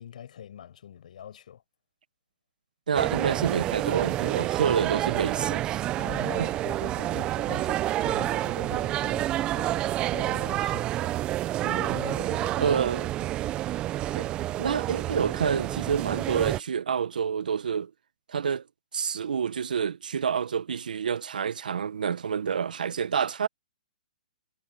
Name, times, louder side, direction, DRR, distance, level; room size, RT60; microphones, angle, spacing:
voice 1, 0.0-1.6 6.0-11.2 11.6-12.7, left 9 dB, 65° left, 5.3 m, -43 dB
sound 1, 2.9-16.6, right 14 dB, 20° right, 0.6 m, -29 dB
voice 2, 2.9-5.8 6.4-6.5 12.6-13.1 14.1-14.3 14.6-17.9 18.3-18.6 18.9-23.5, right 7 dB, 80° right, 1.1 m, -28 dB
hypercardioid pair, 150°, 4 cm